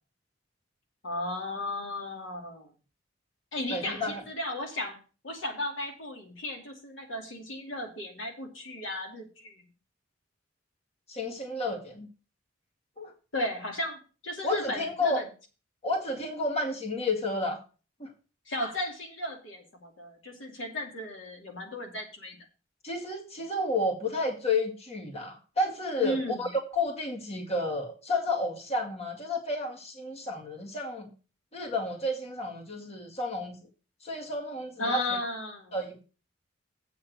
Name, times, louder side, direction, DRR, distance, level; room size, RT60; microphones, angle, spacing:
voice 1, 1.0-2.7 3.5-5.0 5.2-9.6 13.3-15.2 18.5-22.4 26.0-26.4 34.8-35.7, left 1 dB, 85° left, 2 dB, 2.6 m, -35 dB
voice 2, 3.7-4.2 11.1-12.1 13.0-13.1 14.4-15.2 15.8-17.6 18.0-18.1 22.8-31.1 31.5-33.6 34.0-35.0 35.7-36.0, left 2 dB, 35° left, 1 dB, 2.0 m, -31 dB
8.0 x 6.2 x 6.3 m, 0.35 s
head